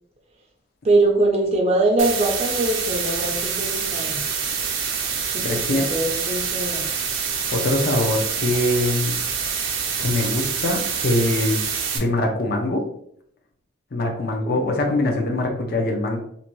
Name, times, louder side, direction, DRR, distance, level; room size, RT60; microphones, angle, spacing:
voice 1, 0.8-4.2 5.3-6.9 14.4-14.6, right 2 dB, 30° right, -1 dB, 0.4 m, -22 dB
sound 1, 2.0-12.0, right 6 dB, 90° right, 0.5 m, -26 dB
voice 2, 5.4-5.9 7.5-9.2 10.0-11.7 11.9-12.8 13.9-16.2, left 1 dB, 50° left, 1 dB, 0.5 m, -23 dB
2.6 x 2.2 x 2.9 m, 0.67 s
head